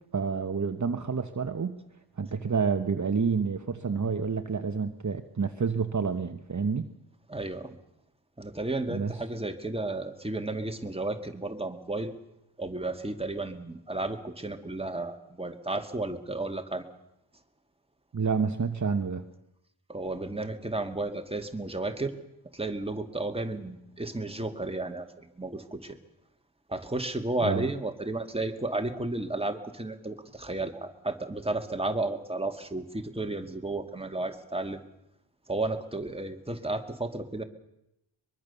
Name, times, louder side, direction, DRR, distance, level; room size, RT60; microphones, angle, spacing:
voice 1, 0.1-1.8 2.2-6.9 8.9-9.2 18.1-19.2 27.4-27.7, right 5 dB, 40° right, 8 dB, 1.2 m, -29 dB
voice 2, 7.3-7.8 8.4-12.1 12.6-16.8 19.9-22.1 22.5-25.1 25.4-26.0 26.7-34.8 35.5-37.4, right 2 dB, 10° right, 6 dB, 2.2 m, -33 dB
23.0 x 23.0 x 6.9 m, 0.83 s
wide cardioid pair, 120°, 45 cm